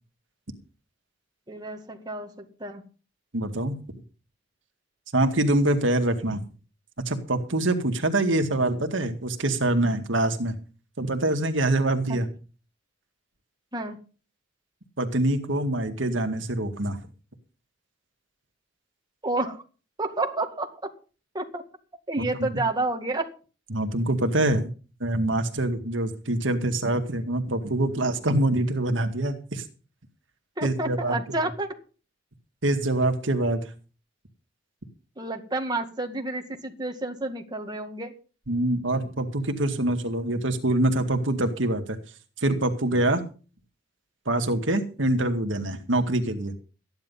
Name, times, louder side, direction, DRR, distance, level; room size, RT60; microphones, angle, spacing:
voice 1, 1.5-2.3 2.6-2.8 12.1-12.2 13.7-14.0 19.2-19.6 20.0-20.9 21.3-21.6 22.1-23.3 30.6-31.8 35.2-38.1, right 2 dB, 20° right, 3 dB, 2.0 m, -30 dB
voice 2, 3.3-3.8 5.1-6.4 7.0-10.6 11.0-12.3 15.0-17.0 22.2-22.6 23.7-24.7 25.0-29.6 30.6-31.2 32.6-33.6 38.5-42.0 42.4-43.2 44.3-46.6, right 1 dB, 75° right, 6 dB, 2.0 m, -25 dB
14.0 x 10.5 x 5.6 m, 0.36 s
head